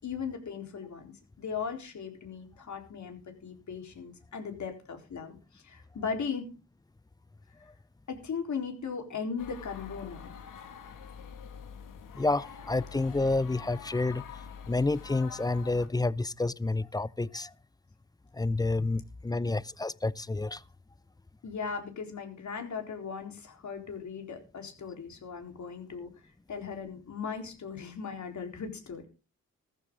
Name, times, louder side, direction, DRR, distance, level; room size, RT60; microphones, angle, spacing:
voice 1, 0.0-6.5 8.1-10.3 21.4-26.1 26.5-29.1, left 6 dB, 65° left, 4.1 m, -38 dB
sound 1, 9.4-15.9, left 7 dB, 85° left, 2.2 m, -46 dB
voice 2, 12.2-14.2 14.7-17.5 18.4-20.6, left 2 dB, 10° left, 0.6 m, -29 dB
14.5 x 13.0 x 3.8 m
cardioid pair, 70°, 31 cm